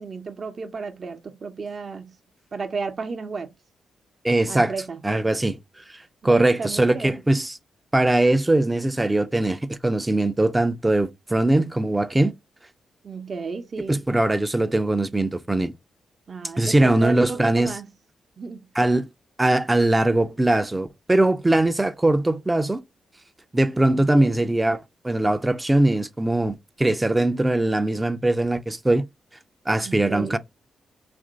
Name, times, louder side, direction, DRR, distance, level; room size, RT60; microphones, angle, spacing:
voice 1, 0.0-2.2 2.5-3.5 4.5-5.3 6.2-7.2 13.0-14.0 16.3-17.9 18.4-18.7 23.9-24.4 29.8-30.4, right 4 dB, 55° right, 0.7 m, -33 dB
voice 2, 4.2-4.7 5.0-5.6 6.2-7.6 7.9-12.3 13.9-15.7 16.6-17.7 18.8-19.1 19.4-22.8 23.5-29.0 29.7-30.4, right 1 dB, 20° right, 0.5 m, -21 dB
2.9 x 2.6 x 3.8 m
supercardioid pair, 50°, 0 cm